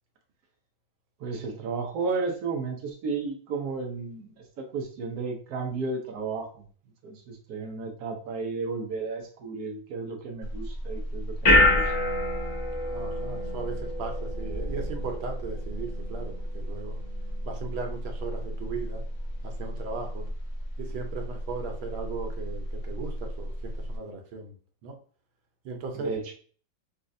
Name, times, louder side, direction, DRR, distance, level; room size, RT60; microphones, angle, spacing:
voice 1, 1.2-6.6 7.0-11.9 25.9-26.3, right 4 dB, 65° right, 3 dB, 1.0 m, -33 dB
sound 1, 10.4-24.0, left 1 dB, 35° left, 0.8 m, -29 dB
voice 2, 12.8-17.0 17.4-19.0 19.4-20.2 20.8-24.5 24.8-25.0 25.6-26.1, right 4 dB, 80° right, 3 dB, 1.6 m, -37 dB
4.2 x 2.4 x 2.6 m, 0.43 s
omnidirectional pair, 2.2 m